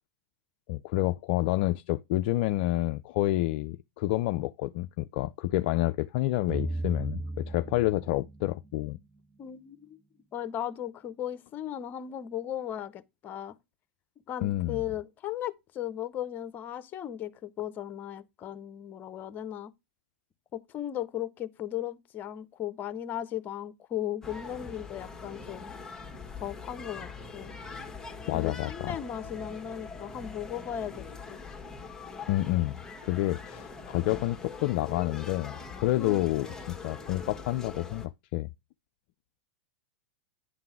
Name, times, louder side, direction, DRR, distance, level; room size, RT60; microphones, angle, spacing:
voice 1, 0.7-9.0 14.4-14.8 28.3-29.0 32.3-32.8 33.0-38.5, left 17 dB, 55° left, 0.4 m, -29 dB
sound 1, 6.5-8.9, right 2 dB, 5° right, 1.0 m, -35 dB
voice 2, 9.4-10.0 10.3-13.5 14.3-19.7 20.5-25.7 26.4-27.5 28.3-31.4 36.0-36.3, left 10 dB, 35° left, 0.9 m, -37 dB
sound 2, 24.2-38.1, left 4 dB, 10° left, 1.7 m, -43 dB
10.0 x 3.8 x 5.9 m
hypercardioid pair, 100°, 6 cm